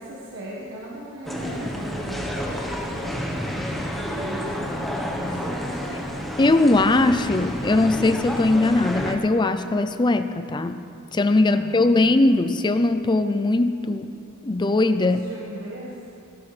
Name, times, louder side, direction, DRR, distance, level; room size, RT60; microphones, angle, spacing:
voice 1, 0.0-2.5 2.9-6.3 11.5-11.9 15.0-15.9, right 1 dB, 60° right, -5 dB, 1.4 m, -38 dB
sound 1, 1.3-9.2, equal, ahead, 1.0 m, -30 dB
voice 2, 6.4-10.8 11.1-14.1 14.4-15.2, left 2 dB, 20° left, 10 dB, 0.4 m, -20 dB
16.0 x 13.0 x 3.3 m, 2.6 s
head